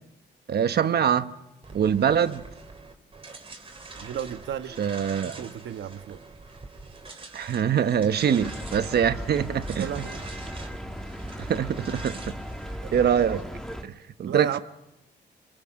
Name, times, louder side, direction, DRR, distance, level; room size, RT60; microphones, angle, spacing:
voice 1, 0.5-1.3 1.7-2.4 4.8-5.4 7.3-10.0 11.4-12.4 12.9-13.4 13.8-14.6, right 8 dB, 60° right, 1.2 m, -24 dB
sound 1, 1.6-13.8, right 3 dB, 30° right, 3.7 m, -44 dB
voice 2, 4.0-4.7 5.2-6.2 9.7-10.3 12.8-12.9 14.2-14.6, right 9 dB, 75° right, 1.4 m, -34 dB
sound 2, 8.4-13.8, equal, 5° left, 1.7 m, -37 dB
28.5 x 27.5 x 6.5 m
cardioid pair, 110°, 19 cm